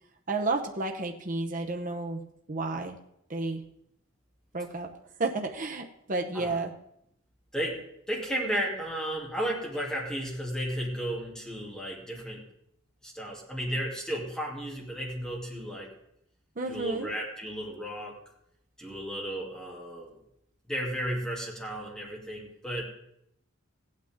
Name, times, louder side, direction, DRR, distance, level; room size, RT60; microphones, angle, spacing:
voice 1, 0.3-3.0 3.3-3.7 4.5-4.9 5.2-6.7 16.6-17.1, right 3 dB, 40° right, 3 dB, 0.9 m, -31 dB
voice 2, 7.5-12.4 13.0-15.9 16.7-18.2 18.8-20.2 20.7-22.8, equal, 5° left, -3 dB, 2.8 m, -34 dB
16.0 x 9.0 x 3.7 m, 0.76 s
head